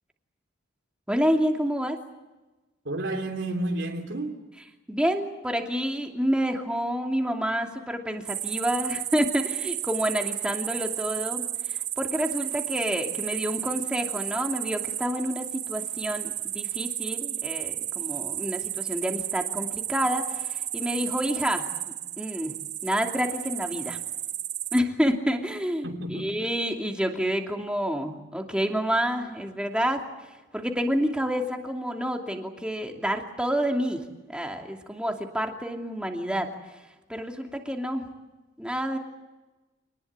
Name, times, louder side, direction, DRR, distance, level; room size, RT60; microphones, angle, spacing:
voice 1, 1.1-2.0 4.9-22.6 22.8-24.0 24.7-30.0 30.5-36.5 37.1-38.0 38.6-39.0, equal, 5° right, 2.7 m, -28 dB
voice 2, 2.8-4.4 25.8-26.3, right 1 dB, 75° right, 3.1 m, -31 dB
sound 1, 8.3-24.8, right 11 dB, 40° right, 0.8 m, -33 dB
26.5 x 20.0 x 8.7 m
head